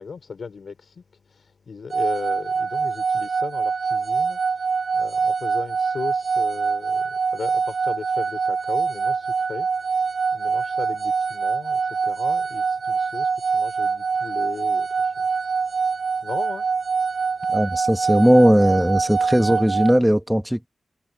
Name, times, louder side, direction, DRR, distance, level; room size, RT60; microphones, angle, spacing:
voice 1, 0.0-15.9 16.2-16.7 17.1-17.6, left 5 dB, 75° left, 4.5 m, -37 dB
sound 1, 1.9-20.0, right 5 dB, 70° right, 1.3 m, -24 dB
voice 2, 17.5-20.7, equal, 5° right, 2.0 m, -18 dB
cardioid pair, 55°, 0 cm